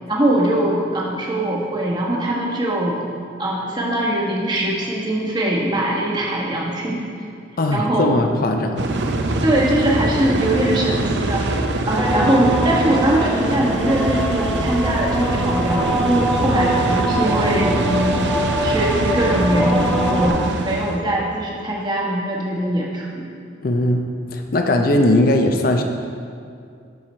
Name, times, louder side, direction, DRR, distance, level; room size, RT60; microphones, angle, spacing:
voice 1, 0.1-3.0 3.4-7.0 7.7-8.1 9.4-11.5 11.8-18.1 18.6-23.2, right 1 dB, 25° right, -3 dB, 1.3 m, -21 dB
voice 2, 7.6-8.8 23.6-25.8, left 1 dB, 50° left, 4 dB, 0.5 m, -19 dB
sound 1, 8.8-21.0, right 2 dB, 65° right, 0.6 m, -23 dB
sound 2, 12.0-20.3, equal, 5° left, 0.5 m, -24 dB
11.5 x 4.8 x 4.3 m, 2.3 s
head